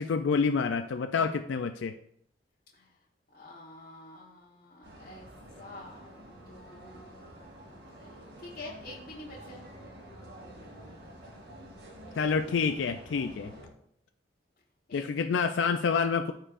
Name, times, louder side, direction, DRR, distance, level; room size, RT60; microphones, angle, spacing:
voice 1, 0.0-1.9 12.2-13.5 14.9-16.3, left 5 dB, 85° left, 7 dB, 0.4 m, -28 dB
voice 2, 3.3-5.3 5.6-7.3 7.9-9.6 14.9-15.4, left 2 dB, 50° left, -6 dB, 1.3 m, -48 dB
sound 1, 4.8-13.7, right 1 dB, 70° right, 2.6 m, -49 dB
13.5 x 4.6 x 2.5 m, 0.69 s
head